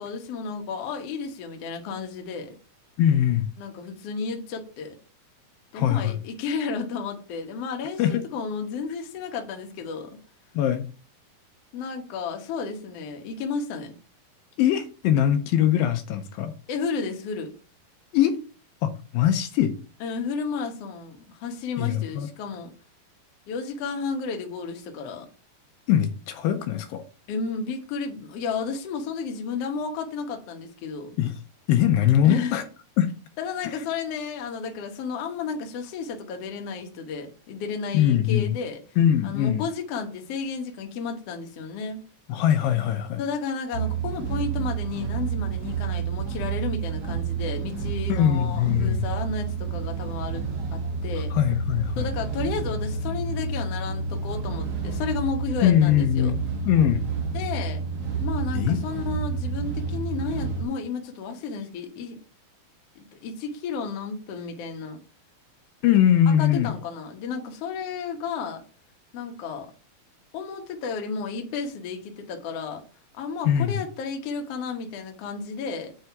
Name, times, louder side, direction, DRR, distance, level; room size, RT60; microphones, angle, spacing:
voice 1, 0.0-2.5 3.6-4.9 5.7-10.2 11.7-13.9 16.7-17.5 20.0-22.7 23.5-25.3 27.3-31.2 32.2-32.5 33.4-38.8 39.2-42.0 43.2-51.3 52.0-56.3 57.3-57.8 58.2-62.2 62.9-65.0 66.4-68.6 69.1-69.7 70.3-72.8 73.1-75.9, left 5 dB, 60° left, 1.6 m, -32 dB
voice 2, 3.0-3.5 5.7-6.2 8.0-8.2 10.6-10.9 14.6-16.5 18.1-18.4 18.8-19.7 21.8-22.3 25.9-27.1 31.2-31.4 31.7-32.6 33.0-33.1 37.9-38.5 39.0-39.6 42.3-43.2 48.1-49.1 51.3-52.1 55.6-57.1 58.5-58.8 65.8-66.7 73.4-73.8, left 10 dB, 80° left, 2.4 m, -22 dB
sound 1, 43.7-60.6, right 5 dB, 55° right, 1.8 m, -29 dB
7.6 x 3.5 x 5.7 m
omnidirectional pair, 4.2 m